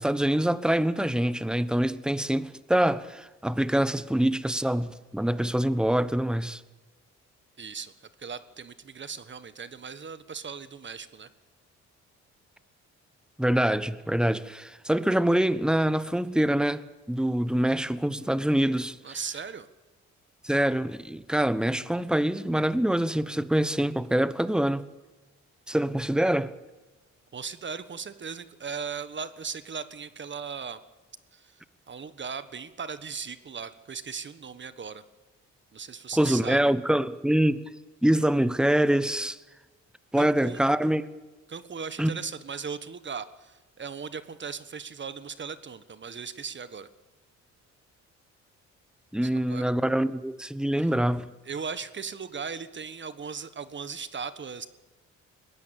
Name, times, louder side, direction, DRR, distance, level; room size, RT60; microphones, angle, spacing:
voice 1, 0.0-6.6 13.4-19.0 20.4-24.9 25.7-26.5 36.2-37.7 38.0-39.4 40.1-41.0 42.0-42.1 49.1-51.3, right 1 dB, 5° right, 1.1 m, -25 dB
voice 2, 7.6-7.9 8.2-11.3 19.0-19.7 27.3-30.8 31.3-31.6 31.9-35.0 35.7-36.7 40.2-40.6 41.5-46.9 49.2-49.7 50.8-50.9 51.4-54.7, right 6 dB, 40° right, 1.4 m, -38 dB
20.5 x 16.5 x 8.8 m
cardioid pair, 90°, 30 cm